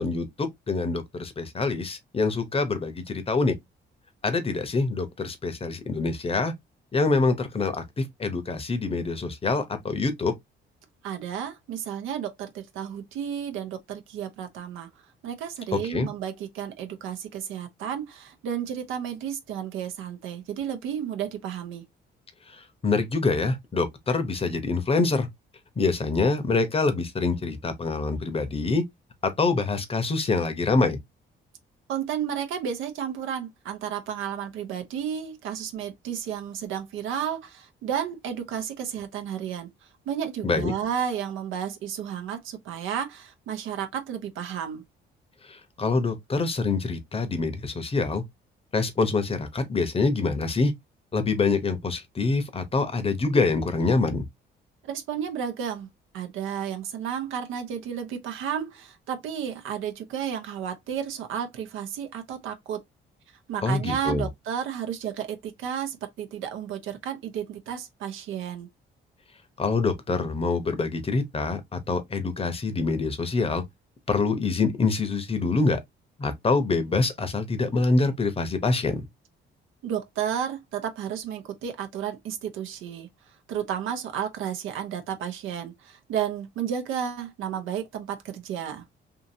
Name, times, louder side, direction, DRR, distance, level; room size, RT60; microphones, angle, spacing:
voice 1, 0.0-3.6 4.2-6.5 6.9-10.3 15.7-16.1 22.5-25.3 25.8-28.8 29.2-31.0 40.4-40.7 45.5-48.2 48.7-50.7 51.1-54.3 63.6-64.3 69.6-73.6 74.1-75.8 76.2-79.0, left 3 dB, 30° left, 0.7 m, -25 dB
voice 2, 11.0-14.9 15.2-21.8 31.9-39.7 40.1-44.9 54.8-55.9 56.1-62.8 63.5-68.7 79.8-83.1 83.5-88.8, right 8 dB, 90° right, 0.7 m, -32 dB
2.7 x 2.6 x 2.6 m
cardioid pair, 90°, 20 cm